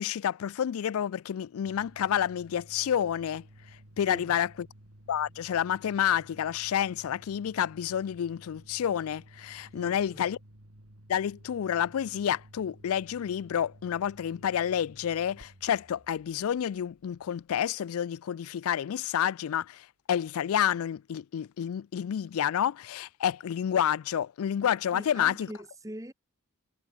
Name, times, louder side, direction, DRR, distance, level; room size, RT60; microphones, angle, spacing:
voice 1, 0.0-3.4 4.0-4.5 5.1-10.4 11.1-25.5, left 9 dB, 80° left, 0.3 m, -29 dB
sound 1, 1.6-18.0, right 1 dB, 85° right, 4.4 m, -55 dB
voice 2, 4.0-4.4 9.7-10.2 24.9-26.1, right 1 dB, 15° right, 1.8 m, -43 dB
head